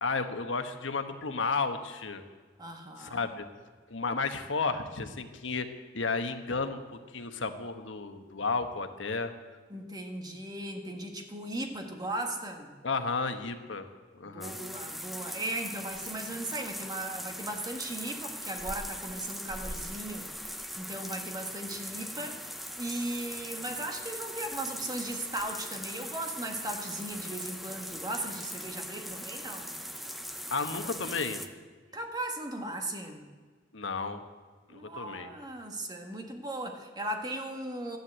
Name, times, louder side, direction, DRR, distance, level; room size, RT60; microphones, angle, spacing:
voice 1, 0.0-2.2 3.0-3.5 3.9-5.7 5.9-9.3 12.8-13.9 14.2-14.6 30.5-31.4 33.7-34.2 34.7-35.3, left 4 dB, 85° left, 7 dB, 1.2 m, -32 dB
voice 2, 2.6-3.3 9.7-12.7 14.2-20.3 20.8-29.7 31.9-33.2 34.7-38.0, right 1 dB, 20° right, 3 dB, 1.6 m, -37 dB
sound 1, 14.4-31.5, equal, ahead, 0.7 m, -40 dB
13.5 x 10.5 x 8.1 m, 1.4 s
head